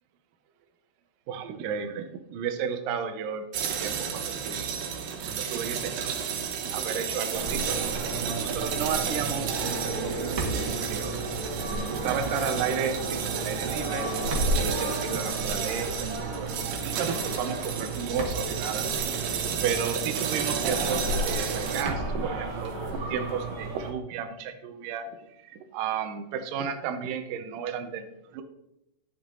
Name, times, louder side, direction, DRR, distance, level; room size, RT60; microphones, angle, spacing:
voice 1, 1.3-3.5 3.8-6.1 6.7-11.2 11.8-14.1 14.6-19.1 19.6-25.1 25.4-28.4, right 7 dB, 85° right, 7 dB, 1.9 m, -33 dB
sound 1, 3.5-21.8, right 7 dB, 70° right, 2.3 m, -32 dB
sound 2, 7.3-23.9, right 2 dB, 50° right, 1.6 m, -33 dB
11.0 x 8.5 x 3.8 m, 0.87 s
omnidirectional pair, 5.2 m